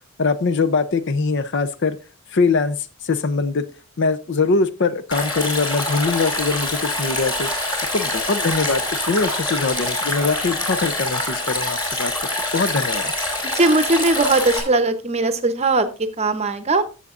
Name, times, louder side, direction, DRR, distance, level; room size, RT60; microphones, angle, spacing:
voice 1, 0.2-2.0 2.3-3.6 4.0-12.1 12.5-13.1, left 4 dB, 55° left, 14 dB, 0.6 m, -22 dB
Stream, 5.1-14.6, left 1 dB, 20° left, 2.6 m, -25 dB
voice 2, 13.5-16.8, right 2 dB, 30° right, 9 dB, 0.8 m, -19 dB
13.5 x 7.0 x 2.5 m, 0.34 s
head